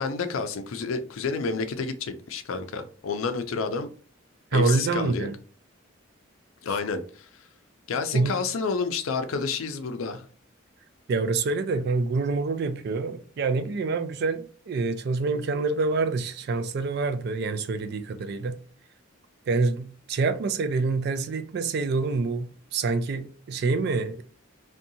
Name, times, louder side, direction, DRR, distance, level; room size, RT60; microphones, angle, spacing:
voice 1, 0.0-3.9 4.5-5.3 6.6-7.3 7.9-10.3, left 4 dB, 80° left, 0.4 m, -29 dB
voice 2, 4.5-5.3 6.7-6.8 8.1-8.4 11.1-18.6 19.5-24.2, right 3 dB, 50° right, 0.3 m, -26 dB
2.7 x 2.2 x 2.6 m
head